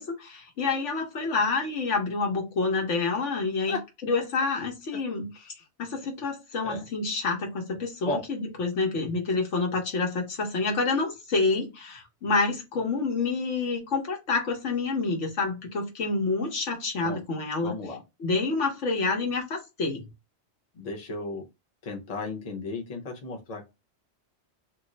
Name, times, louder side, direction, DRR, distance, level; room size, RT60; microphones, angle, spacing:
voice 1, 0.0-5.5 5.8-17.7 18.2-20.0, left 3 dB, 80° left, 1.3 m, -28 dB
voice 2, 17.6-18.0 20.7-21.5 21.8-23.7, left 3 dB, 40° left, 0.8 m, -34 dB
3.0 x 2.0 x 3.8 m
omnidirectional pair, 1.2 m